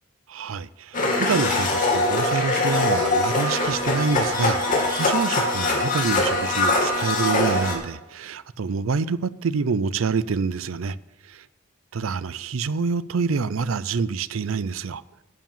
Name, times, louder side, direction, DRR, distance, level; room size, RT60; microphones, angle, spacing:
voice 1, 0.3-11.0 11.3-11.4 11.9-15.0, right 5 dB, 80° right, 0.5 m, -27 dB
Domestic sounds home sounds, 0.9-7.7, left 2 dB, 45° left, 2.5 m, -22 dB
11.0 x 7.5 x 7.4 m
head